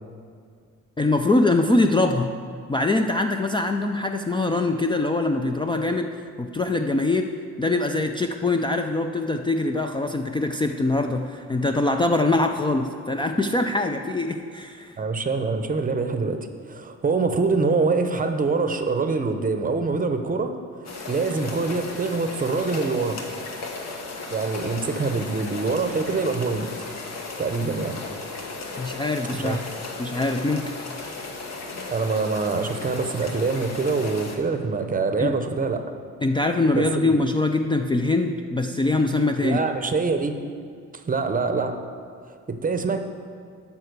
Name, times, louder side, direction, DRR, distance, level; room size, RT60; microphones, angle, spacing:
voice 1, 1.0-2.4 2.7-6.1 6.4-7.3 7.6-14.9 28.8-29.6 30.0-30.7 35.2-35.3 36.2-39.6, left 2 dB, 15° left, 4 dB, 0.4 m, -23 dB
voice 2, 15.0-23.2 24.3-26.7 27.4-28.0 29.3-29.6 31.9-35.9 36.7-37.2 39.4-40.4 41.0-41.8 42.3-43.0, right 4 dB, 30° right, 7 dB, 0.7 m, -25 dB
sound 1, 20.9-34.4, left 3 dB, 60° left, 1.3 m, -35 dB
8.9 x 5.7 x 6.7 m, 2.2 s
cardioid pair, 90°, 30 cm